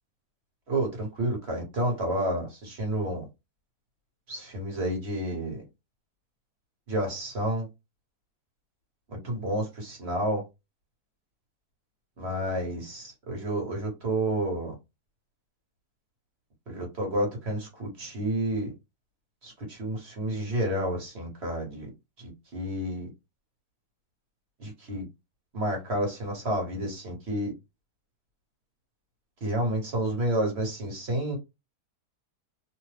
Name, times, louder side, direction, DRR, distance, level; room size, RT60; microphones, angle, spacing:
voice 1, 0.7-3.3 4.3-5.6 6.9-7.7 9.2-10.4 12.2-14.7 16.7-18.7 19.4-21.9 22.5-23.1 24.6-25.0 25.5-27.5 29.4-31.4, right 1 dB, 45° right, 1.3 m, -30 dB
2.9 x 2.2 x 3.2 m
omnidirectional pair, 1.7 m